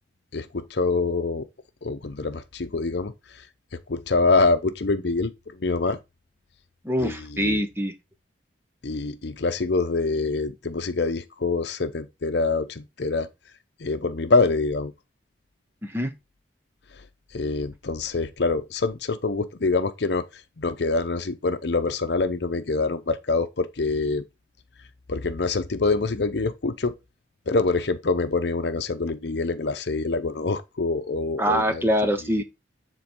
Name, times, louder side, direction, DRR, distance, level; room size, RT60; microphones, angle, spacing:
voice 1, 0.3-1.5 1.8-3.1 3.9-6.0 7.0-7.6 8.8-13.3 13.8-14.9 17.3-20.3 20.6-24.2 25.1-26.9 27.5-31.8 32.3-32.4, left 3 dB, 65° left, 0.7 m, -25 dB
voice 2, 6.8-7.9 15.8-16.1 31.4-32.4, equal, 10° right, 0.9 m, -24 dB
7.5 x 3.9 x 4.5 m
head